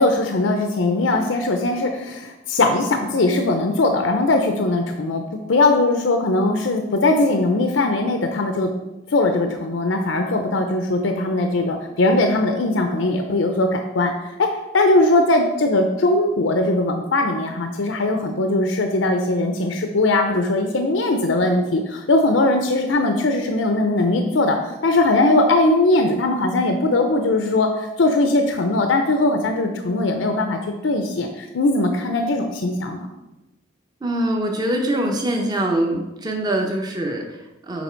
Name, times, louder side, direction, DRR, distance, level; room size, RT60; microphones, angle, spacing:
voice 1, 0.0-5.2 5.5-8.7 9.1-14.5 14.7-24.6 24.8-33.1, left 2 dB, 80° left, 4 dB, 0.6 m, -20 dB
voice 2, 34.0-37.8, right 1 dB, 20° right, 1 dB, 0.7 m, -23 dB
7.0 x 4.6 x 4.4 m, 0.98 s
head